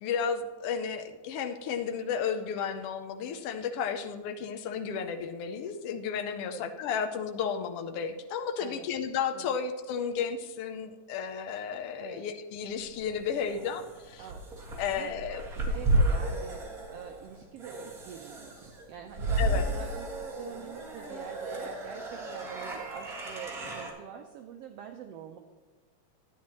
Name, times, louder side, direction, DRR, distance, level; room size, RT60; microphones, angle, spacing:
voice 1, 0.0-14.3 14.8-15.4 19.4-19.6, left 6 dB, 80° left, 6 dB, 1.3 m, -33 dB
voice 2, 6.4-6.8 8.6-8.9 9.3-9.5 12.0-12.3 14.2-14.5 14.9-15.1 15.5-25.4, right 8 dB, 80° right, 4 dB, 1.4 m, -45 dB
sound 1, 12.8-23.9, right 1 dB, 30° right, 2.1 m, -33 dB
12.0 x 10.5 x 3.0 m, 1.4 s
omnidirectional pair, 3.5 m